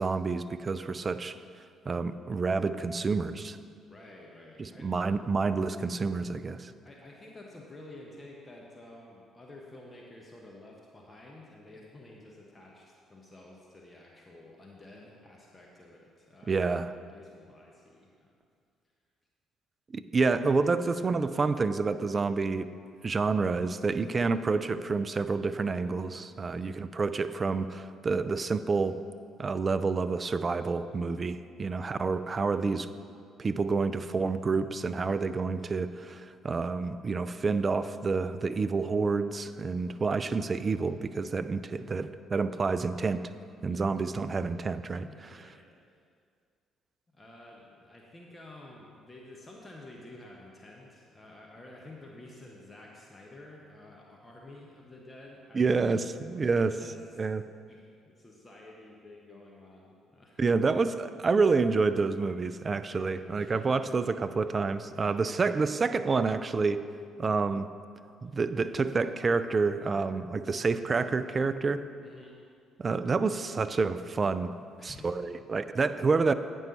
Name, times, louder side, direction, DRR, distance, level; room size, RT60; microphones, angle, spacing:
voice 1, 0.0-1.4 1.9-3.6 4.6-6.7 16.5-16.9 19.9-22.7 23.0-29.0 29.4-32.9 33.4-43.2 43.6-45.1 55.5-56.7 57.2-57.4 60.4-66.8 67.2-67.7 68.2-71.8 72.8-74.5 74.8-76.3, right 4 dB, 35° right, 12 dB, 0.3 m, -28 dB
voice 2, 3.9-4.9 6.8-16.7 17.0-18.4 26.5-26.9 43.6-44.0 44.9-45.9 47.1-55.6 56.1-57.2 57.7-60.4 62.8-63.9 65.0-65.4 72.0-72.4 74.8-75.4, left 2 dB, 25° left, -2 dB, 1.1 m, -51 dB
9.1 x 5.5 x 4.1 m, 2.3 s
hypercardioid pair, 50°, 0 cm